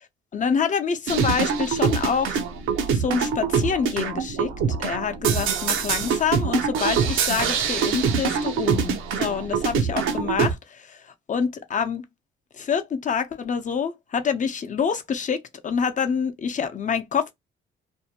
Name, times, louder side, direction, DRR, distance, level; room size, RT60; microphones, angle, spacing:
voice 1, 0.3-2.4 2.9-12.0 12.5-17.3, left 6 dB, 40° left, 0.7 m, -26 dB
sound 1, 1.1-10.5, right 6 dB, 85° right, 0.7 m, -24 dB
2.6 x 2.2 x 2.8 m
cardioid pair, 90°, 20 cm